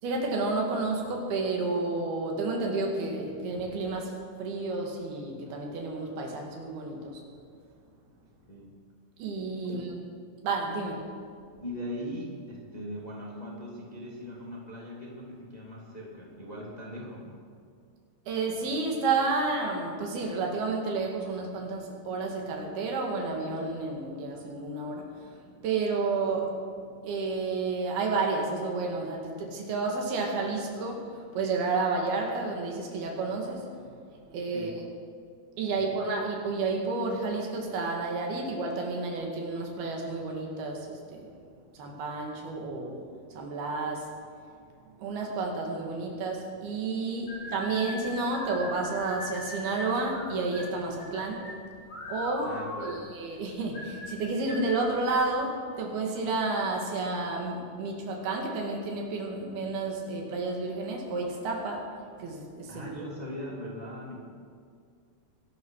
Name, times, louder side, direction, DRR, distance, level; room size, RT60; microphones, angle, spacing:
voice 1, 0.0-7.2 9.2-9.9 10.4-11.1 18.3-26.6 27.0-34.8 35.6-41.3 41.7-43.1 43.3-44.1 45.0-51.5 52.1-52.6 52.8-63.1, right 3 dB, 90° right, 1 dB, 4.1 m, -31 dB
voice 2, 11.6-17.5 34.5-34.8 35.7-35.9 52.4-53.1 62.7-64.2, equal, 15° left, -3 dB, 1.9 m, -40 dB
sound 1, 47.3-55.3, left 1 dB, 30° left, 3.7 m, -40 dB
23.0 x 12.0 x 4.8 m, 2.2 s
omnidirectional pair, 4.3 m